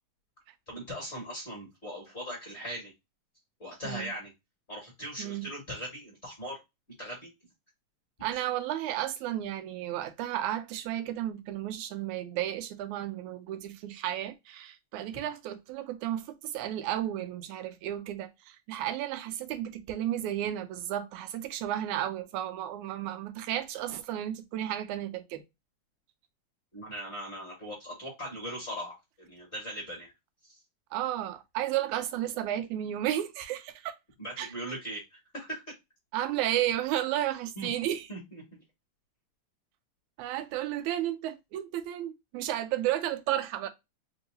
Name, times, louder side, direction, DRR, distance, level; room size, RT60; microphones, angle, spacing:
voice 1, 0.7-2.9 3.6-4.3 4.7-6.6 7.0-7.3 26.7-30.1 30.4-30.6 34.2-35.6 37.6-37.7 38.1-38.4, equal, 30° left, 1.5 m, -39 dB
voice 2, 8.2-25.4 30.9-33.9 34.4-34.5 36.1-38.1 40.2-43.7, right 12 dB, 85° right, 2.0 m, -33 dB
4.7 x 2.8 x 2.5 m
omnidirectional pair, 3.3 m